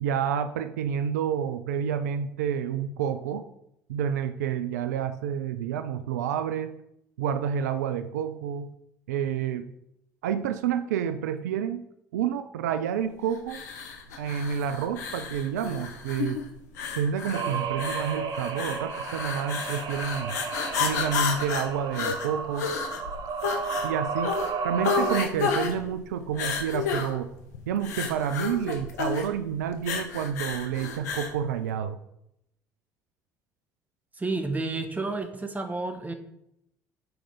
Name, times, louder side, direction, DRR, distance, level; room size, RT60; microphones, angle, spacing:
voice 1, 0.0-3.5 3.9-6.7 7.2-8.7 9.1-9.7 10.2-11.8 12.1-13.6 14.2-16.5 17.0-20.4 20.8-22.7 23.8-27.3 27.7-32.0, right 8 dB, 80° right, 10 dB, 0.4 m, -29 dB
sound 1, 13.5-31.4, left 6 dB, 80° left, 0.8 m, -32 dB
sound 2, 17.3-25.2, right 5 dB, 50° right, 0.9 m, -33 dB
voice 2, 34.2-36.1, right 3 dB, 20° right, 6 dB, 1.2 m, -30 dB
5.4 x 4.9 x 5.7 m, 0.79 s
hypercardioid pair, 55°, 9 cm